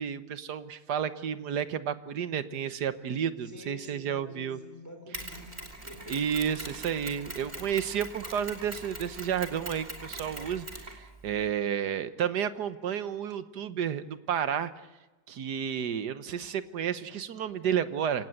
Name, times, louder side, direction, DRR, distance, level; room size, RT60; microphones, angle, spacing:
voice 1, 0.0-4.6 6.1-14.7 15.3-18.3, right 8 dB, 90° right, 13 dB, 1.7 m, -31 dB
voice 2, 3.5-6.2, left 1 dB, 10° left, 5 dB, 4.4 m, -47 dB
Mechanisms, 5.1-11.5, right 1 dB, 25° right, 3.6 m, -42 dB
27.0 x 17.5 x 8.0 m, 1.2 s
omnidirectional pair, 1.7 m